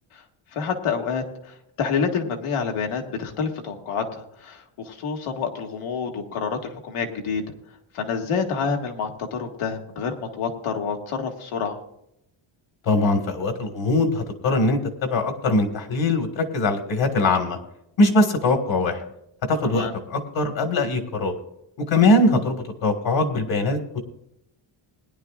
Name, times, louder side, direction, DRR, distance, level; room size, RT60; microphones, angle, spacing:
voice 1, 0.5-7.4 7.9-11.8 19.7-19.9, left 5 dB, 85° left, 3 dB, 2.0 m, -28 dB
voice 2, 12.8-17.6 18.0-19.0 19.4-21.4 21.8-24.0, left 2 dB, 60° left, 5 dB, 1.8 m, -22 dB
21.0 x 10.5 x 2.4 m, 0.80 s
wide cardioid pair, 170°, 49 cm